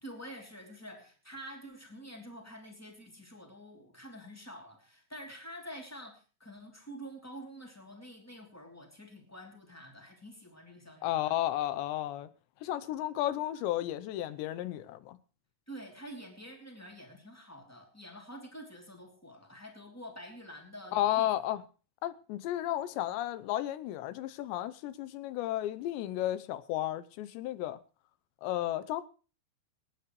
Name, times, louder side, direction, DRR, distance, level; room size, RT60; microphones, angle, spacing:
voice 1, 0.0-11.3 15.7-21.3, equal, 5° left, 1.7 m, -48 dB
voice 2, 11.0-12.3 12.6-15.2 20.9-21.6 22.0-27.8 28.4-29.0, left 13 dB, 80° left, 3.0 m, -33 dB
27.0 x 9.3 x 3.2 m
omnidirectional pair, 5.1 m